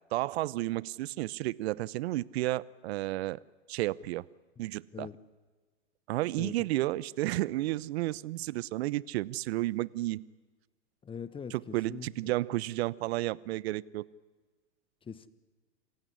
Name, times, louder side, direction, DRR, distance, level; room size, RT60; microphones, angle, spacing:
voice 1, 0.1-3.4 3.7-4.2 4.6-5.1 6.1-10.2 11.5-14.0, right 17 dB, 60° right, 22 dB, 0.8 m, -32 dB
voice 2, 11.0-12.1 15.1-15.3, left 6 dB, 15° left, 16 dB, 1.2 m, -41 dB
27.0 x 16.0 x 9.9 m, 1.4 s
hypercardioid pair, 115°, 36 cm